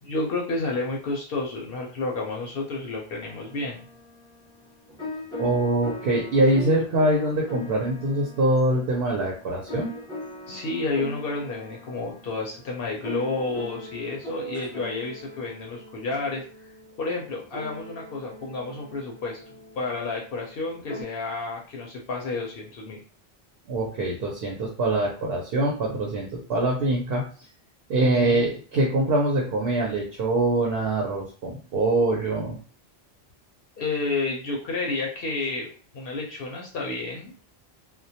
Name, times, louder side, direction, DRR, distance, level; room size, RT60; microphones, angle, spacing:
voice 1, 0.0-3.8 10.5-16.7 17.0-19.4 19.8-23.0 28.0-28.5 33.8-37.3, left 3 dB, 70° left, -1 dB, 0.8 m, -30 dB
sound 1, 3.2-21.0, equal, 5° left, 0.6 m, -40 dB
voice 2, 5.4-9.9 23.7-27.2 27.9-32.6, right 2 dB, 70° right, -1 dB, 0.8 m, -24 dB
2.2 x 2.1 x 2.7 m, 0.41 s
omnidirectional pair, 1.1 m